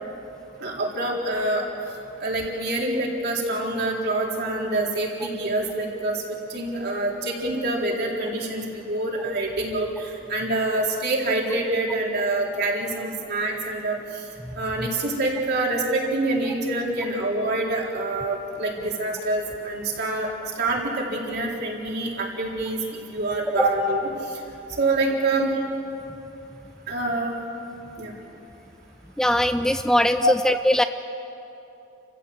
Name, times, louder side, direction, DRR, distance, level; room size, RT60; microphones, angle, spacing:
voice 1, 0.6-1.6 2.2-6.2 6.5-14.0 14.6-20.3 20.6-22.8 23.1-24.1 24.8-25.5 26.9-27.3 28.0-28.1 30.2-30.3, right 2 dB, 55° right, -2 dB, 4.1 m, -26 dB
voice 2, 29.2-30.8, equal, 5° left, 9 dB, 0.4 m, -20 dB
29.5 x 15.5 x 7.9 m, 2.9 s
head